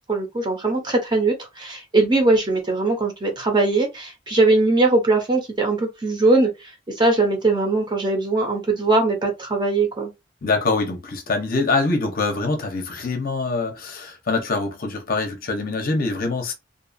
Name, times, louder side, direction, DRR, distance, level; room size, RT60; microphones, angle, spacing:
voice 1, 0.1-6.5 6.9-10.1, right 2 dB, 20° right, 0.7 m, -20 dB
voice 2, 10.4-16.5, left 3 dB, 45° left, 0.6 m, -24 dB
2.6 x 2.3 x 2.5 m
head